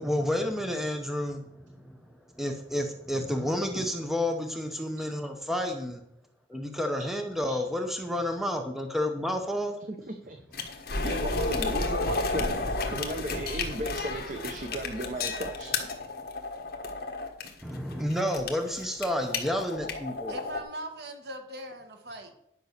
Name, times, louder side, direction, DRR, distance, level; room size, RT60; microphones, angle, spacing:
voice 1, 0.0-6.0 6.5-9.8 17.6-20.4, left 1 dB, ahead, 4 dB, 0.8 m, -30 dB
voice 2, 9.9-15.9, right 1 dB, 45° right, 5 dB, 0.8 m, -36 dB
sound 1, 10.5-20.6, left 3 dB, 50° left, 1.4 m, -32 dB
voice 3, 20.3-22.4, right 1 dB, 60° right, 5 dB, 1.5 m, -40 dB
10.5 x 5.4 x 6.6 m, 0.75 s
head